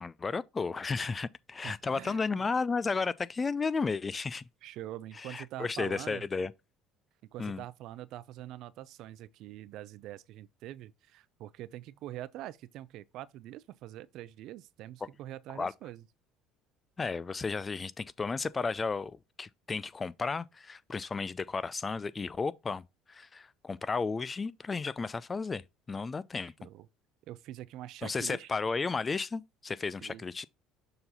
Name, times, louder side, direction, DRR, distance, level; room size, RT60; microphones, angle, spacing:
voice 1, 0.0-4.5 5.2-6.5 7.4-7.6 15.6-15.7 17.0-25.6 25.9-26.5 28.0-30.5, left 4 dB, 30° left, 0.4 m, -33 dB
voice 2, 1.6-2.5 4.6-6.2 7.2-16.0 26.3-26.9 27.3-28.5 30.0-30.2, right 14 dB, 65° right, 0.4 m, -44 dB
6.8 x 3.9 x 4.1 m
hypercardioid pair, 65°, 0 cm